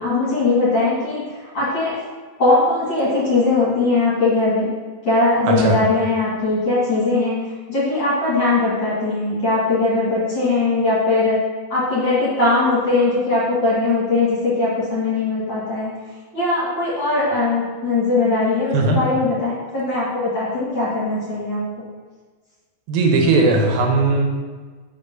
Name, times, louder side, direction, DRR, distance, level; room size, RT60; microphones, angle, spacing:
voice 1, 0.0-2.0 2.4-4.7 5.0-11.4 11.7-15.9 16.3-21.8, left 3 dB, 40° left, -9 dB, 2.0 m, -20 dB
voice 2, 5.5-5.8 18.7-19.0 22.9-24.2, right 3 dB, 85° right, 1 dB, 2.8 m, -17 dB
5.2 x 5.2 x 5.4 m, 1.4 s
omnidirectional pair, 4.2 m